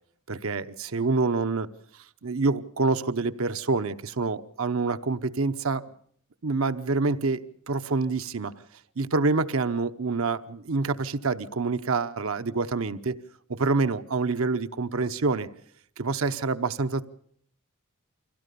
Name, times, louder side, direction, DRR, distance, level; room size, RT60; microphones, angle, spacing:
voice 1, 0.3-1.7 2.2-5.8 6.4-8.5 9.0-13.2 13.5-15.5 16.0-17.0, right 3 dB, 70° right, 10 dB, 0.9 m, -27 dB
24.5 x 16.5 x 6.8 m, 0.65 s
head